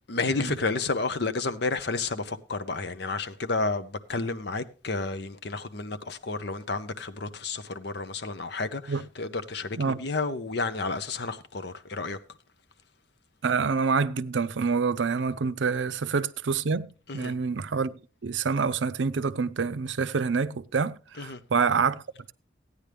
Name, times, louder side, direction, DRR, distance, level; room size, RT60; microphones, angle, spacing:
voice 1, 0.1-12.2 17.1-17.3 21.2-21.4, left 3 dB, 60° left, 0.8 m, -31 dB
voice 2, 13.4-22.0, right 5 dB, 70° right, 0.5 m, -27 dB
15.0 x 9.7 x 3.4 m
head